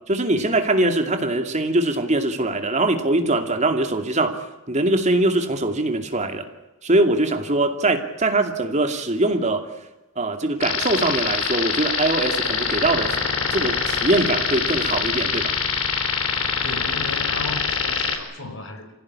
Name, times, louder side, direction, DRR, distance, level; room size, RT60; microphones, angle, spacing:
voice 1, 0.1-4.4 4.7-6.5 6.8-9.7 10.2-13.2 13.5-15.6, right 2 dB, 35° right, 2.6 m, -22 dB
sound 1, 10.6-18.2, left 6 dB, 90° left, 4.2 m, -24 dB
voice 2, 16.6-18.9, left 3 dB, 60° left, 4.5 m, -35 dB
26.0 x 16.5 x 9.9 m
head